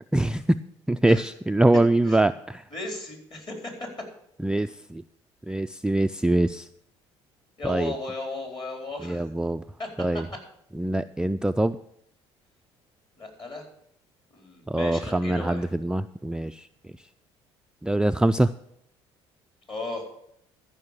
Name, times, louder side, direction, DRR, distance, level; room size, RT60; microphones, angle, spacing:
voice 1, 0.1-0.6 0.9-2.6 4.4-5.0 5.5-6.7 7.6-7.9 9.0-9.6 10.0-10.3 10.7-11.8 14.7-16.7 17.8-18.5, right 1 dB, 5° right, 9 dB, 0.3 m, -23 dB
voice 2, 2.7-3.9 7.6-9.2 9.8-10.2 13.2-13.7 14.3-15.7 19.7-20.1, left 2 dB, 35° left, 2 dB, 4.2 m, -35 dB
14.0 x 5.5 x 6.6 m, 0.73 s
hypercardioid pair, 60°, 14 cm